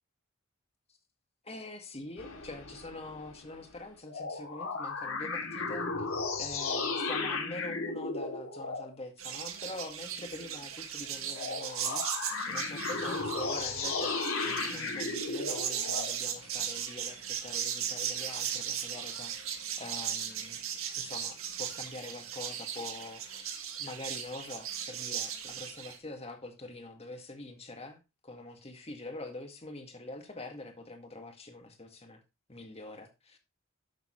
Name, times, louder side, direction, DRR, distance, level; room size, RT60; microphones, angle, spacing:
voice 1, 1.4-6.1 6.4-12.0 12.5-19.3 19.8-20.6 21.0-32.2 32.5-33.4, left 2 dB, 30° left, 2.0 m, -44 dB
sound 1, 2.2-3.8 4.1-8.9 11.3-16.2, left 4 dB, 75° left, 2.9 m, -35 dB
sound 2, 9.2-26.0, right 8 dB, 80° right, 1.7 m, -37 dB
12.0 x 6.9 x 3.1 m
head